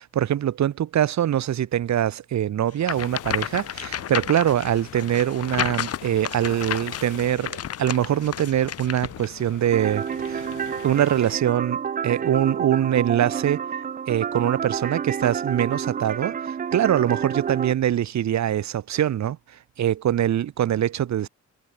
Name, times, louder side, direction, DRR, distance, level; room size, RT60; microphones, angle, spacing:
voice 1, 0.0-10.5 10.8-11.8 12.0-13.6 14.1-19.4 19.8-21.3, right 11 dB, 65° right, 2.3 m, -23 dB
sound 1, 2.8-9.3, left 9 dB, 55° left, 1.4 m, -31 dB
sound 2, 2.9-11.4, left 15 dB, 85° left, 3.9 m, -43 dB
sound 3, 9.7-17.7, right 7 dB, 30° right, 0.5 m, -29 dB
cardioid pair, 90°, 30 cm